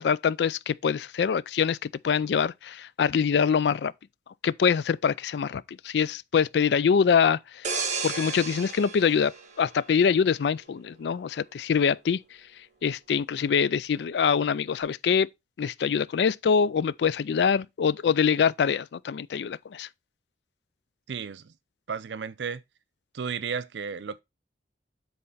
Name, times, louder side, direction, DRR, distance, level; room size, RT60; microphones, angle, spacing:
voice 1, 0.0-3.9 4.4-7.7 8.0-12.2 12.8-15.3 15.6-19.9, left 6 dB, 70° left, 0.3 m, -24 dB
sound 1, 7.6-10.3 10.8-11.0, right 4 dB, 45° right, 1.5 m, -33 dB
voice 2, 21.1-21.5 21.9-22.6 23.1-24.2, right 6 dB, 85° right, 0.5 m, -33 dB
7.7 x 4.2 x 4.0 m
head